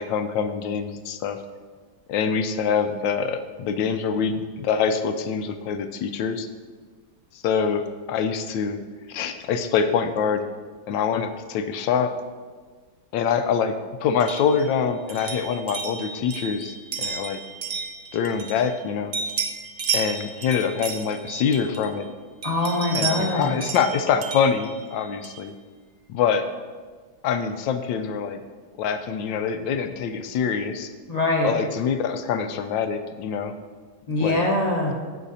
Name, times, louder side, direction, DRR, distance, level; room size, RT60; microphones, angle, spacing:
voice 1, 0.0-1.4 2.1-6.5 7.4-7.8 8.1-8.8 9.1-10.4 10.9-12.1 13.1-13.7 14.0-17.4 18.1-19.1 19.9-22.1 22.9-25.5 26.1-26.5 27.2-28.4 28.8-30.9 31.4-33.5 34.2-34.4, left 6 dB, 80° left, 9 dB, 1.3 m, -25 dB
sound 1, 14.2-18.8 19.1-22.0 22.4-25.5, right 5 dB, 70° right, 0.5 m, -33 dB
voice 2, 22.4-23.5 31.1-31.5 34.1-34.9, left 2 dB, 30° left, -1 dB, 0.9 m, -23 dB
16.0 x 5.7 x 2.7 m, 1.5 s
omnidirectional pair, 2.1 m